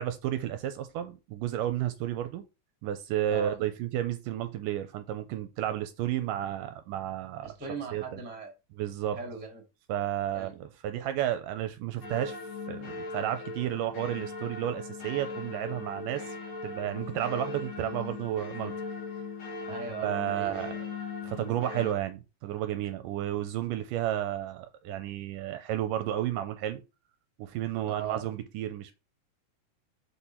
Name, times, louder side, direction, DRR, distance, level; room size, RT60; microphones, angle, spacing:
voice 1, 0.0-2.4 2.8-7.5 7.9-8.2 8.8-9.2 9.9-12.4 12.7-16.3 16.6-18.7 20.0-20.8 21.2-26.8 27.4-28.9, right 12 dB, 80° right, 2.1 m, -32 dB
voice 2, 7.4-8.5 9.1-9.6 10.3-10.5 19.7-20.7 21.3-21.4 27.9-28.2, right 5 dB, 5° right, 0.9 m, -39 dB
sound 1, 12.0-21.9, left 4 dB, 70° left, 1.2 m, -39 dB
7.3 x 4.3 x 4.4 m
omnidirectional pair, 4.1 m